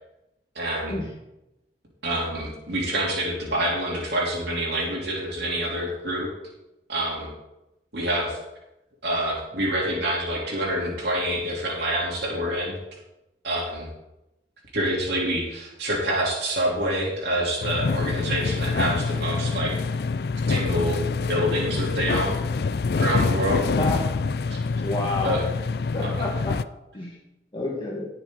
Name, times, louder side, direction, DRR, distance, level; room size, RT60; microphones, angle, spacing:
voice 1, 0.6-1.0 2.0-6.3 6.9-7.3 7.9-8.4 9.0-12.8 13.4-13.9 14.7-19.7 20.5-21.0 21.3-22.4 23.0-23.7 24.4-24.6 25.2-25.4 26.0-26.3, right 1 dB, 60° right, -3 dB, 3.7 m, -26 dB
sound 1, 17.6-26.6, left 4 dB, 55° left, 0.4 m, -26 dB
voice 2, 23.7-24.2 24.8-25.4 25.9-26.6 26.9-27.2 27.5-28.1, left 2 dB, 25° left, -3 dB, 1.9 m, -29 dB
18.5 x 7.2 x 4.1 m, 0.92 s
head